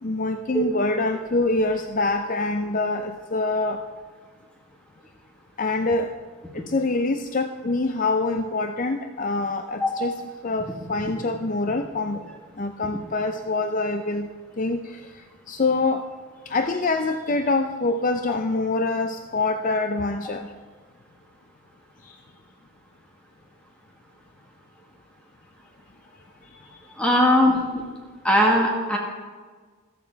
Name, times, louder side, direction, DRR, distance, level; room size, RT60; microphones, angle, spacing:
voice 1, 0.0-3.8 5.6-6.1 6.5-10.1 10.4-12.2 12.6-14.3 14.6-16.1 16.5-20.5 22.0-22.2 26.5-26.8, left 3 dB, 40° left, 7 dB, 0.5 m, -25 dB
voice 2, 27.0-27.6 28.2-29.0, left 1 dB, 5° left, -1 dB, 1.7 m, -19 dB
14.5 x 13.5 x 4.6 m, 1.5 s
head